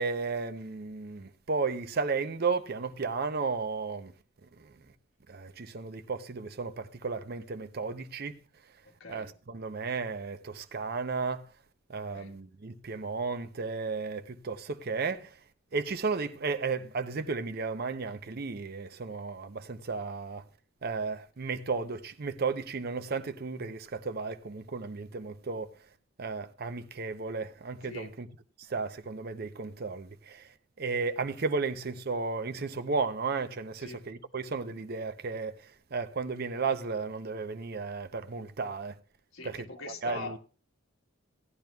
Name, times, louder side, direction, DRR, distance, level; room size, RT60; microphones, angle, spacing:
voice 1, 0.0-4.1 4.6-4.7 5.3-8.4 9.1-11.5 11.9-15.4 15.7-20.4 20.8-25.7 26.2-28.3 28.6-30.5 30.8-39.0 39.4-39.6 40.0-40.4, right 4 dB, 45° right, 0.6 m, -34 dB
voice 2, 8.8-9.3 12.1-12.4 27.8-28.2 33.8-34.1 39.3-40.4, left 3 dB, 70° left, 1.4 m, -43 dB
16.5 x 10.5 x 2.3 m
head